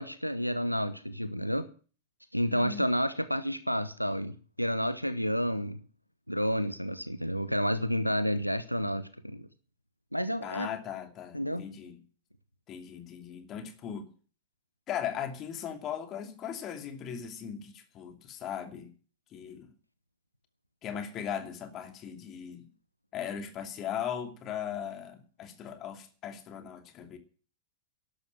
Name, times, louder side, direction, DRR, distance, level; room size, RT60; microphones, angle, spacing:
voice 1, 0.0-1.7 2.3-5.8 6.3-9.5 10.1-10.7 11.3-11.6, equal, 90° left, 12 dB, 0.9 m, -30 dB
voice 2, 2.4-2.9 10.4-12.0 12.7-14.1 14.9-18.9 19.3-19.7 20.8-22.6 23.1-27.2, left 8 dB, 35° left, 6 dB, 2.7 m, -38 dB
12.0 x 12.0 x 7.6 m, 0.40 s
figure-of-eight pair, 90°, 0 cm